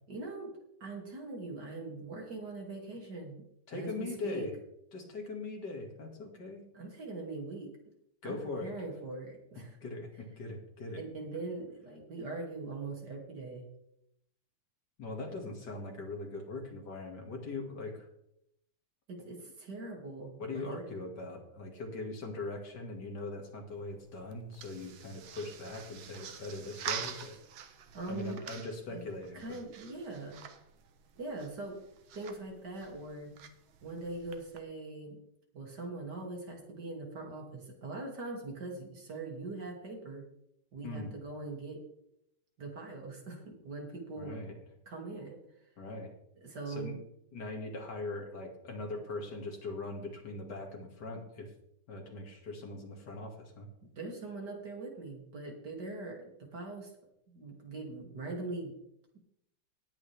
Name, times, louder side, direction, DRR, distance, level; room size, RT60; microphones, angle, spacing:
voice 1, 0.1-0.5 0.8-3.4 3.7-4.5 6.7-7.9 8.2-9.8 10.9-13.7 19.1-20.8 27.9-28.4 28.9-30.5 31.2-31.8 32.1-33.5 33.8-35.2 35.5-40.2 40.7-41.8 42.6-44.3 44.9-45.4 46.4-47.0 53.8-56.9 57.3-58.7, right 3 dB, 50° right, 0 dB, 3.3 m, -42 dB
voice 2, 3.7-4.5 4.9-6.6 8.2-8.7 9.8-11.0 15.0-18.1 20.4-27.4 28.1-29.6 40.8-41.1 44.2-44.5 45.8-46.1 46.7-47.0 47.3-51.5 51.9-53.7, left 2 dB, 55° left, 2 dB, 2.8 m, -41 dB
sound 1, 23.7-34.6, right 8 dB, 75° right, 1.8 m, -46 dB
18.5 x 8.5 x 3.5 m, 0.77 s
omnidirectional pair, 2.3 m